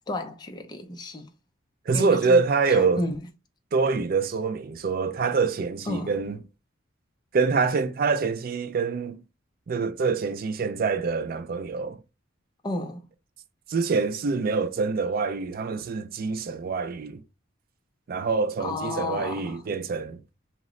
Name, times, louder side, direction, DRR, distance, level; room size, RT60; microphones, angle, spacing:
voice 1, 0.1-1.3 1.9-2.4 2.7-3.2 5.9-6.1 12.6-13.0 18.6-19.6, left 2 dB, 20° left, 0.4 m, -32 dB
voice 2, 1.9-3.0 3.7-6.4 7.3-9.2 9.7-12.0 13.7-17.2 18.1-20.2, right 4 dB, 45° right, 0.3 m, -25 dB
2.9 x 2.0 x 3.6 m
head